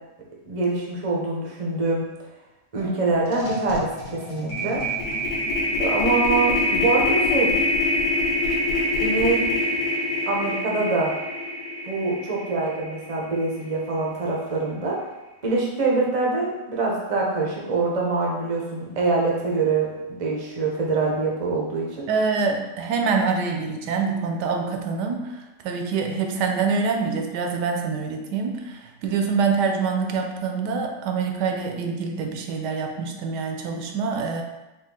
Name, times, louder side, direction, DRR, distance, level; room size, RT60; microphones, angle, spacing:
voice 1, 0.5-2.0 2.7-4.8 5.8-7.5 9.0-9.5 10.3-11.1 11.8-15.0 15.4-19.9 20.2-22.1, right 3 dB, 50° right, -3 dB, 0.4 m, -24 dB
sound 1, 2.8-2.9 3.2-13.5, left 1 dB, 75° left, 1.5 m, -25 dB
voice 2, 22.1-25.4 25.6-34.4, right 5 dB, 80° right, 3 dB, 1.2 m, -25 dB
4.2 x 2.4 x 3.6 m, 1.0 s
omnidirectional pair, 1.8 m